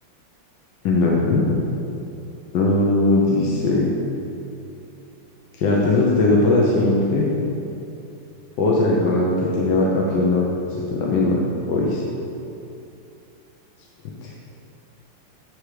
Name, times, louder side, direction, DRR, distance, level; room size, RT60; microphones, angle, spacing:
voice 1, 0.8-1.5 2.5-3.9 5.6-7.3 8.6-11.4 11.7-12.0 14.2-14.3, left 2 dB, 65° left, -3 dB, 1.3 m, -19 dB
7.9 x 3.6 x 6.4 m, 2.7 s
omnidirectional pair, 2.4 m